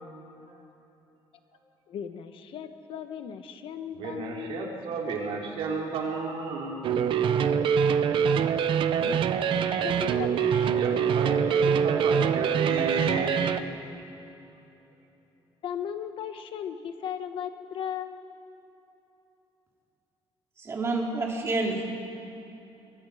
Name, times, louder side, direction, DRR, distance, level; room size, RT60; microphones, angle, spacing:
voice 1, 1.9-4.8 9.0-11.5 15.6-18.3, left 8 dB, 70° left, 8 dB, 1.4 m, -37 dB
voice 2, 3.9-6.8 10.7-13.5, right 3 dB, 80° right, -2 dB, 4.1 m, -32 dB
sound 1, 6.8-13.6, right 7 dB, 65° right, 0.9 m, -24 dB
voice 3, 20.6-21.8, right 2 dB, 30° right, -1 dB, 3.3 m, -28 dB
27.0 x 22.5 x 5.1 m, 3.0 s
cardioid pair, 160°, 9 cm